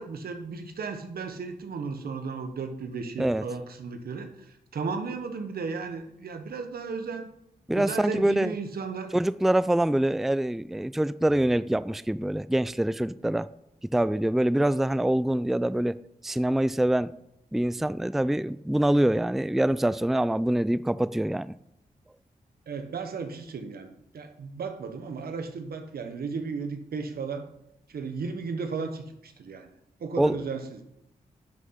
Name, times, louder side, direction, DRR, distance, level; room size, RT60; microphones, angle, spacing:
voice 1, 0.0-7.3 7.8-9.1 22.7-27.5 27.9-29.7 30.0-30.8, right 5 dB, 80° right, 6 dB, 1.3 m, -35 dB
voice 2, 7.7-8.6 9.1-13.5 13.9-16.0 16.2-17.1 17.5-21.5 30.2-30.4, right 1 dB, ahead, 16 dB, 0.4 m, -25 dB
10.5 x 6.4 x 5.8 m, 0.79 s
cardioid pair, 50°, 16 cm